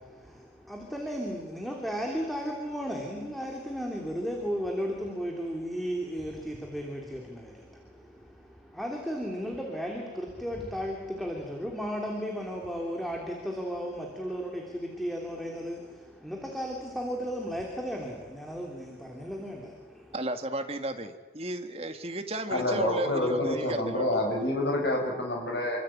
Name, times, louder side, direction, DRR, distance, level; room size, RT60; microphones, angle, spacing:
voice 1, 0.0-20.1, equal, ahead, 0 dB, 3.0 m, -35 dB
voice 2, 20.1-24.0, right 1 dB, 30° right, 6 dB, 2.0 m, -34 dB
voice 3, 22.5-25.8, left 1 dB, 65° left, 1 dB, 7.1 m, -28 dB
27.0 x 24.5 x 8.8 m, 1.3 s
head